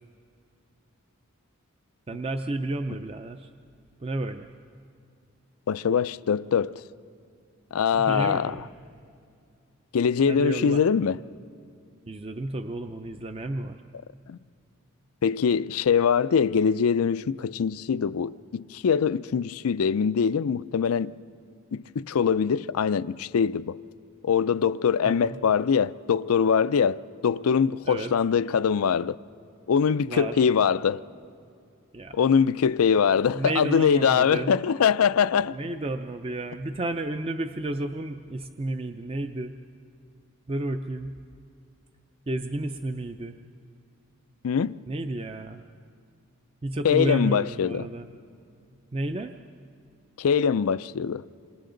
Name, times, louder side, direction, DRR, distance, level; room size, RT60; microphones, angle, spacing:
voice 1, 2.1-3.5 4.0-4.5 7.9-8.7 10.2-10.8 12.1-13.8 25.0-25.4 27.9-28.1 30.1-30.5 31.9-32.2 33.3-34.5 35.5-39.6 40.5-41.2 42.3-43.4 44.9-45.6 46.6-48.1 48.9-49.3, right 2 dB, 25° right, 0.5 m, -31 dB
voice 2, 5.7-6.8 7.7-8.6 9.9-11.2 14.3-14.4 15.2-21.1 21.7-23.8 24.2-29.2 29.7-31.0 32.1-35.5 44.4-44.8 46.8-47.9 50.2-51.2, left 6 dB, 85° left, 0.4 m, -23 dB
28.5 x 26.0 x 3.9 m
head